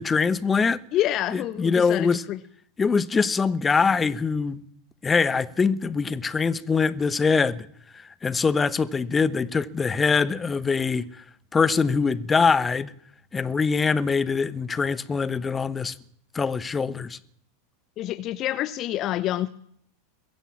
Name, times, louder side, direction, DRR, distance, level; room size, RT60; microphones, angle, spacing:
voice 1, 0.0-0.8 1.3-2.2 2.8-4.6 5.0-7.7 7.9-11.2 11.5-12.9 13.3-15.9 16.3-17.2, left 5 dB, 15° left, 1.1 m, -23 dB
voice 2, 0.9-2.4 18.0-19.5, left 13 dB, 35° left, 0.8 m, -27 dB
22.5 x 16.0 x 7.4 m
figure-of-eight pair, 85°, 0 cm